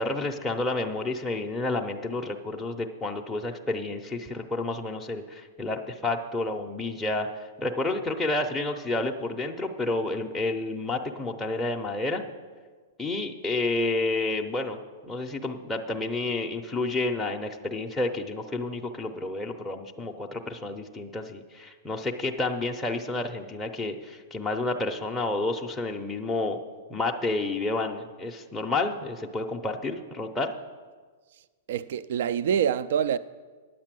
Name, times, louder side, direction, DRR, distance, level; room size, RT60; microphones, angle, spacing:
voice 1, 0.0-7.3 7.6-12.2 13.0-26.6 26.9-30.5, left 2 dB, 5° left, 0.6 m, -30 dB
voice 2, 31.7-33.2, right 8 dB, 60° right, 0.3 m, -25 dB
9.5 x 8.2 x 7.5 m
hypercardioid pair, 160°, 0 cm